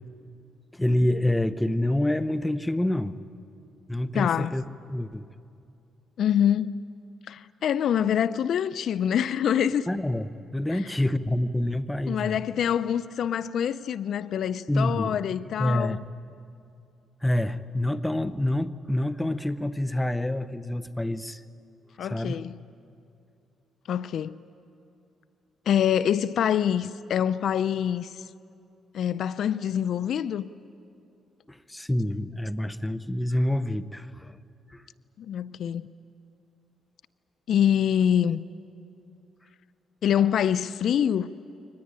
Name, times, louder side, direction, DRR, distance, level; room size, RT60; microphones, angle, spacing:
voice 1, 0.7-3.2 3.9-4.6 4.9-5.3 9.9-12.4 14.7-15.2 15.6-16.0 17.2-21.4 22.0-22.4 31.5-34.4 34.7-34.8, left 1 dB, 10° left, 0.8 m, -27 dB
voice 2, 4.1-4.5 6.2-6.8 7.3-9.9 10.7-10.8 12.1-16.0 22.0-22.6 23.9-24.4 25.7-28.2 28.9-30.5 35.2-35.9 37.5-38.4 40.0-41.3, left 9 dB, 65° left, 0.5 m, -25 dB
23.5 x 19.0 x 9.8 m
cardioid pair, 90°, 0 cm